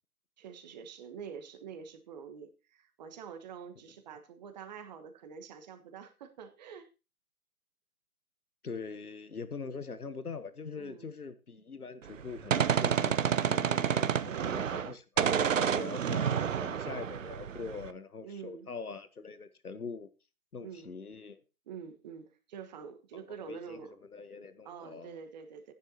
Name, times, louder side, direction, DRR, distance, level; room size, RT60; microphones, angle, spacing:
voice 1, 0.4-6.9 9.6-9.8 10.7-11.1 14.3-14.5 16.3-16.5 18.2-18.7 20.6-20.9 21.7-23.9 24.6-25.7, right 7 dB, 30° right, 1.4 m, -46 dB
voice 2, 8.6-20.1 20.5-21.4 23.3-25.2, left 4 dB, 85° left, 1.1 m, -43 dB
Gunshot gunfire, 12.1-14.9 15.2-17.9, right 8 dB, 60° right, 0.8 m, -29 dB
14.0 x 10.0 x 2.8 m
figure-of-eight pair, 140°, 43 cm